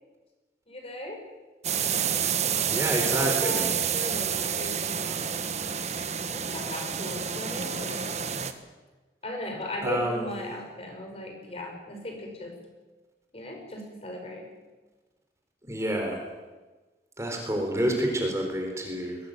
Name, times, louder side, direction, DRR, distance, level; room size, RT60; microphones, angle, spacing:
voice 1, 0.7-1.2 1.8-5.6 6.3-8.2 9.2-12.6 13.3-14.5, left 1 dB, 35° left, 2 dB, 5.6 m, -37 dB
sound 1, 1.6-8.5, right 8 dB, 40° right, 1.4 m, -29 dB
voice 2, 2.7-3.6 9.8-10.3 15.7-16.2 17.2-19.2, right 1 dB, 15° right, 2 dB, 4.2 m, -28 dB
21.5 x 18.0 x 9.2 m, 1.2 s
head